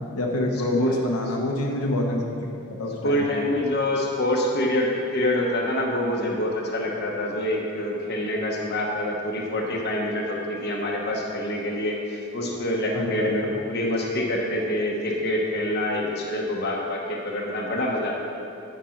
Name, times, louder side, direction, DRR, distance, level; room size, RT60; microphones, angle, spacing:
voice 1, 0.1-2.4 2.8-3.3 12.9-13.3, left 1 dB, 85° left, 0 dB, 1.1 m, -26 dB
voice 2, 3.0-18.1, left 1 dB, 50° left, -1 dB, 1.1 m, -26 dB
10.5 x 5.3 x 5.8 m, 2.7 s
head